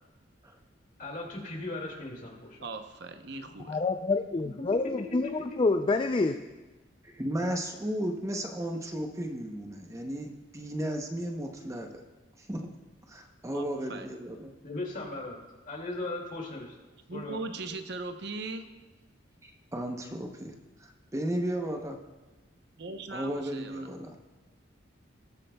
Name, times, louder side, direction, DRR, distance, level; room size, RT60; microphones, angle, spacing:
voice 1, 1.0-2.6 14.6-15.4 15.7-16.7 17.1-17.4, left 2 dB, 45° left, 0 dB, 2.3 m, -37 dB
voice 2, 2.6-3.8 13.5-14.1 17.1-18.7 22.8-23.9, right 3 dB, 60° right, 7 dB, 0.7 m, -39 dB
voice 3, 3.7-5.3 5.6-6.4, left 3 dB, 25° left, 7 dB, 0.4 m, -27 dB
voice 4, 7.0-11.9 12.4-12.7 13.1-14.5 19.4-20.5 20.8-22.0 23.1-24.2, right 1 dB, 15° right, 3 dB, 0.7 m, -34 dB
20.0 x 8.4 x 2.2 m, 1.2 s
head